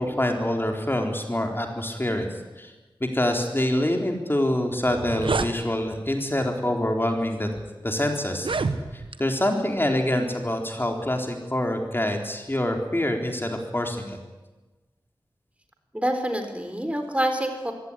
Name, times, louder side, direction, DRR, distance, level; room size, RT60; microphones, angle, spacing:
voice 1, 0.0-2.3 2.6-2.7 3.0-7.5 7.8-8.5 8.9-14.2, left 1 dB, 25° left, 3 dB, 3.8 m, -26 dB
sound 1, 4.4-4.5 4.8-5.5 6.4-6.6 7.3-7.4 8.3-9.2, right 4 dB, 85° right, 1.2 m, -28 dB
voice 2, 15.9-17.7, right 1 dB, 15° right, 6 dB, 3.9 m, -26 dB
22.5 x 17.0 x 9.9 m, 1.2 s
cardioid pair, 40°, 9 cm